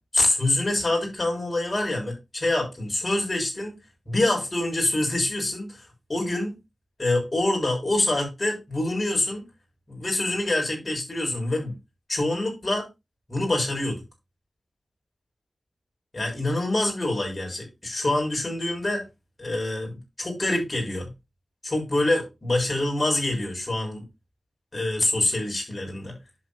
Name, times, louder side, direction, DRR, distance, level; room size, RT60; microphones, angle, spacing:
voice 1, 0.1-3.8 4.1-6.5 7.0-9.4 9.9-11.7 12.1-12.9 13.3-14.0 16.1-19.0 19.4-21.1 21.6-24.0 24.7-26.2, left 1 dB, 30° left, 7.4 m, -26 dB
10.5 x 8.3 x 3.0 m
wide cardioid pair, 95°, 0 cm